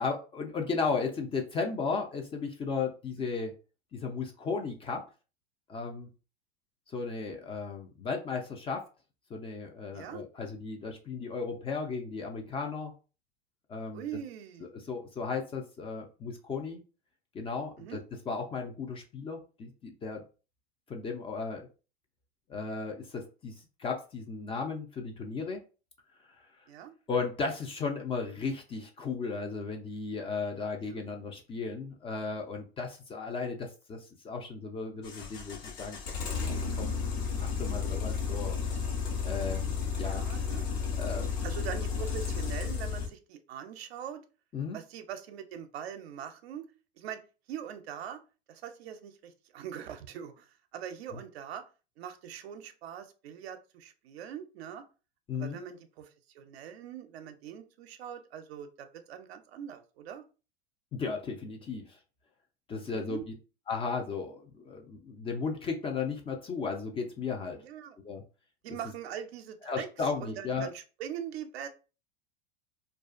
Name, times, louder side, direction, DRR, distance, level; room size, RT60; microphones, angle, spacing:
voice 1, 0.0-3.5 3.9-5.0 5.7-6.1 6.9-8.8 9.3-12.9 13.7-14.1 14.9-16.8 17.3-18.0 18.3-20.2 20.9-21.7 22.5-25.6 27.1-34.0 34.2-36.0 36.3-37.0 37.3-38.6 39.2-39.7 40.0-40.2 41.0-41.3 44.5-44.8 55.3-55.6 60.9-62.0 62.7-63.2 63.7-67.6 68.0-68.2 69.7-70.7, left 4 dB, 20° left, 3 dB, 0.4 m, -35 dB
voice 2, 9.9-10.2 13.9-14.7 17.8-18.0 26.7-26.9 30.8-31.0 40.0-40.7 41.4-44.2 44.7-46.7 47.0-47.2 47.5-48.2 48.5-51.6 52.0-54.8 55.3-60.2 62.8-63.2 67.5-68.0 68.6-71.7, right 9 dB, 70° right, 8 dB, 0.5 m, -42 dB
sound 1, 35.0-43.1, left 5 dB, 70° left, 1.0 m, -33 dB
2.4 x 2.3 x 2.4 m, 0.34 s
hypercardioid pair, 95°, 32 cm